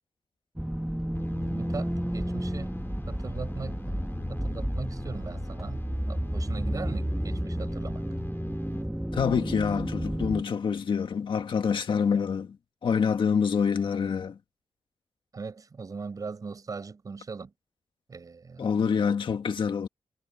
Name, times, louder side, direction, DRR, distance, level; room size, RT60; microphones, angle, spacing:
sound 1, 0.6-10.4, equal, 5° right, 1.5 m, -32 dB
sound 2, 1.1-8.8, left 3 dB, 25° left, 2.8 m, -41 dB
voice 1, 1.3-2.8 3.1-4.0 4.3-8.1 15.3-17.5 18.1-18.7, right 4 dB, 40° right, 7.0 m, -40 dB
voice 2, 9.1-12.6 12.8-14.4 18.6-19.9, left 6 dB, 60° left, 1.8 m, -26 dB
wide cardioid pair, 165°, 10 cm